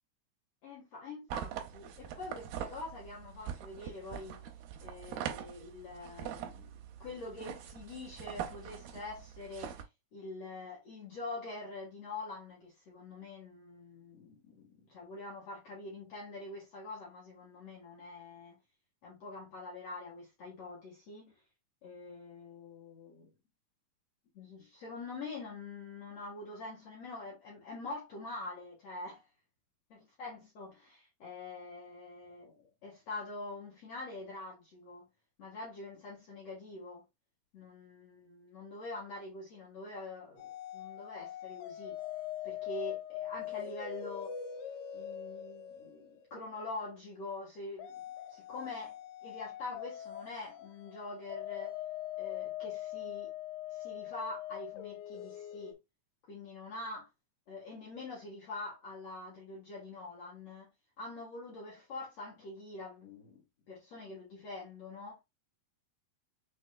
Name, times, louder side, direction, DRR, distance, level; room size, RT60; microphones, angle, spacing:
voice 1, 0.6-4.4 4.8-6.7 7.0-9.8 10.1-18.6 19.0-21.3 21.8-23.3 24.3-29.2 29.9-35.1 35.4-37.0 37.5-42.0 42.4-44.4 44.9-48.0 48.3-51.8 52.2-53.3 53.7-55.8 56.3-57.1 57.5-60.7 61.0-65.2, left 2 dB, 55° left, 2.1 m, -45 dB
sound 1, 1.3-9.8, right 9 dB, 80° right, 2.7 m, -43 dB
sound 2, 40.4-46.6 47.8-55.7, left 11 dB, 85° left, 2.7 m, -42 dB
6.4 x 3.5 x 2.2 m
omnidirectional pair, 4.5 m